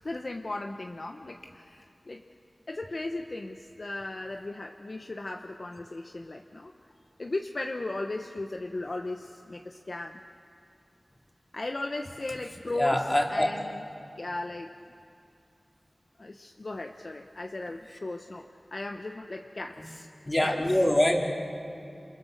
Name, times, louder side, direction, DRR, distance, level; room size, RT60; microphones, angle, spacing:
voice 1, 0.0-2.2 2.7-6.7 7.2-10.2 11.5-13.0 13.3-13.8 14.2-14.7 16.2-20.1 20.4-20.6, left 2 dB, 55° left, 3 dB, 1.0 m, -36 dB
voice 2, 12.7-13.5 19.8-19.9 20.2-21.3, left 1 dB, 30° left, 0 dB, 3.1 m, -24 dB
28.5 x 28.5 x 6.7 m, 2.5 s
wide cardioid pair, 65°, 0 cm